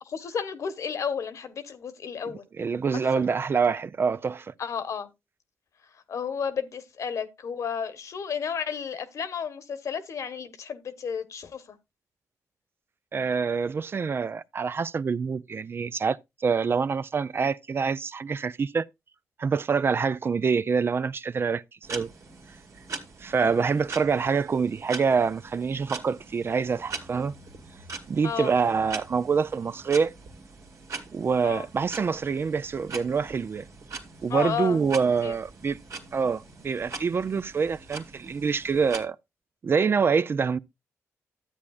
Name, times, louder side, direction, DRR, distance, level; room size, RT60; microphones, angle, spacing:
voice 1, 0.1-2.4 4.6-5.1 6.1-11.8 28.2-28.5 31.4-31.7 34.3-34.8 35.2-35.3, left 7 dB, 70° left, 1.2 m, -32 dB
voice 2, 2.6-4.5 13.1-18.8 19.4-21.6 21.9-22.1 23.2-27.3 28.1-30.1 31.1-33.7 34.2-35.8 36.1-39.2 39.6-40.6, right 5 dB, 45° right, 0.4 m, -26 dB
sound 1, 21.8-39.0, right 4 dB, 70° right, 2.0 m, -42 dB
12.5 x 8.4 x 2.4 m
cardioid pair, 75°, 6 cm